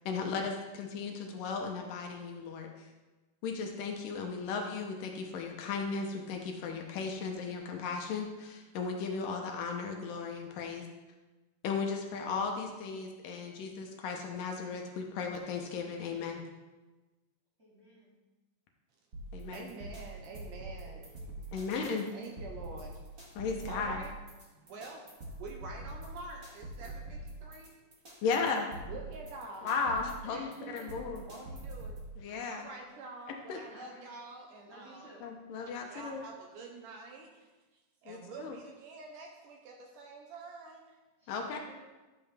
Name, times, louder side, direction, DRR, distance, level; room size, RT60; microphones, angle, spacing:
voice 1, 0.1-2.9 3.4-10.9 11.6-16.4 19.3-19.6 21.5-22.1 23.4-24.0 28.2-28.7 29.6-31.2 32.2-32.7 33.5-33.6 35.2-36.2 38.1-38.6 41.3-41.6, left 5 dB, 75° left, 2 dB, 2.4 m, -36 dB
voice 2, 17.6-18.1 20.3-21.7 23.6-23.7 30.2-31.5 33.7-34.0 34.7-35.2 35.7-35.8 41.2-41.7, right 2 dB, 20° right, -7 dB, 2.4 m, -53 dB
sound 1, 19.1-32.1, right 2 dB, 35° right, 1.3 m, -44 dB
voice 3, 19.5-21.1 22.1-23.3 23.7-24.1 24.4-27.7 28.9-29.8 31.2-32.0 32.5-35.1 35.8-41.0, right 3 dB, 70° right, 1 dB, 2.2 m, -47 dB
12.0 x 7.6 x 3.4 m, 1.2 s
omnidirectional pair, 4.2 m